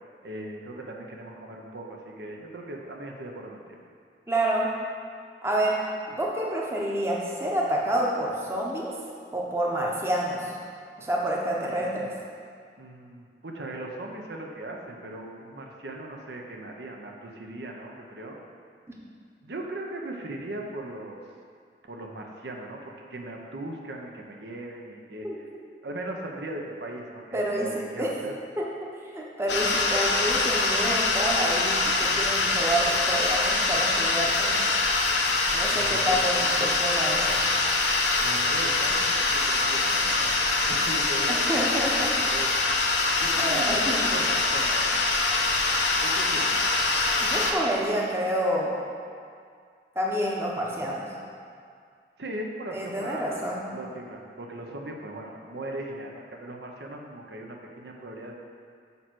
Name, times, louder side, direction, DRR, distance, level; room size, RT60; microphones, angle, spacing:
voice 1, 0.2-3.8 11.6-12.1 12.8-18.4 19.4-21.2 21.9-25.3 25.8-28.4 35.7-36.7 38.2-42.6 43.2-45.5 46.0-46.6 52.2-53.3 53.7-58.3, right 1 dB, 75° right, 1 dB, 0.8 m, -38 dB
voice 2, 4.3-4.7 5.4-5.8 6.1-8.9 9.3-10.5 11.0-12.1 25.2-25.4 27.3-28.1 28.6-34.5 35.5-37.4 41.3-42.1 43.4-44.0 47.2-48.8 50.0-51.1 52.7-53.6, right 1 dB, 15° right, -3 dB, 0.8 m, -28 dB
sound 1, 29.5-47.5, left 3 dB, 85° left, 0.9 m, -24 dB
7.0 x 4.5 x 6.1 m, 2.2 s
head